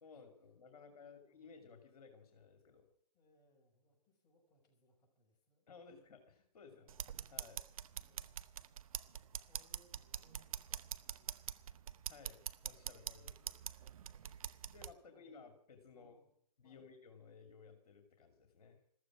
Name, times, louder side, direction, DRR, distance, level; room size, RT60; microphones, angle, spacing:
voice 1, 0.0-2.8 5.7-6.9 7.3-7.6 12.1-13.6 14.7-16.2 16.6-18.8, left 5 dB, 60° left, 5 dB, 2.6 m, -58 dB
voice 2, 0.7-1.5 3.1-5.7 6.6-7.0 7.9-8.4 9.1-11.8 15.0-15.4 15.9-16.3 16.6-16.9, equal, 20° left, -1 dB, 6.3 m, -73 dB
sound 1, 6.9-14.9, right 9 dB, 55° right, 0.8 m, -45 dB
14.5 x 14.0 x 6.1 m, 0.69 s
figure-of-eight pair, 135°, 21 cm